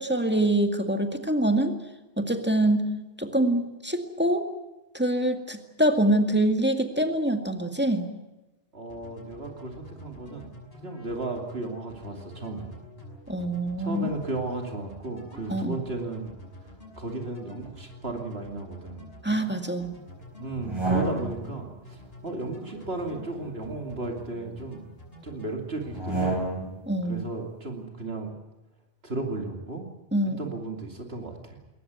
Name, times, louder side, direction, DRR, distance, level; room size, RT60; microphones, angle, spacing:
voice 1, 0.0-1.8 2.2-4.5 4.9-8.1 13.3-14.0 15.5-15.8 19.2-20.0 26.9-27.3 30.1-30.4, right 1 dB, 10° right, 6 dB, 2.0 m, -25 dB
voice 2, 8.7-12.8 13.8-16.3 17.0-19.1 20.4-24.8 25.2-26.4 27.0-28.3 29.0-29.9 30.4-31.6, right 2 dB, 65° right, 2 dB, 3.0 m, -35 dB
sound 1, 8.9-23.3 23.6-24.3 24.6-25.5 25.8-26.4, left 2 dB, 60° left, 6.4 m, -47 dB
sound 2, 20.5-21.6 22.9-24.5 25.9-26.9, right 2 dB, 25° right, 4.2 m, -31 dB
21.5 x 19.0 x 9.4 m, 1.0 s
omnidirectional pair, 1.1 m